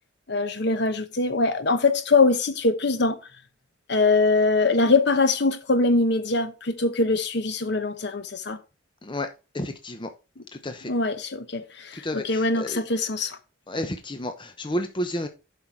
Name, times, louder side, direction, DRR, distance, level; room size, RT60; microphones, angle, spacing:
voice 1, 0.3-3.2 3.9-8.6 10.9-13.4, left 3 dB, 60° left, 1.0 m, -22 dB
voice 2, 9.5-10.1 10.5-10.9 11.9-12.8 13.7-15.3, left 1 dB, 25° left, 0.8 m, -31 dB
7.7 x 5.6 x 4.6 m
head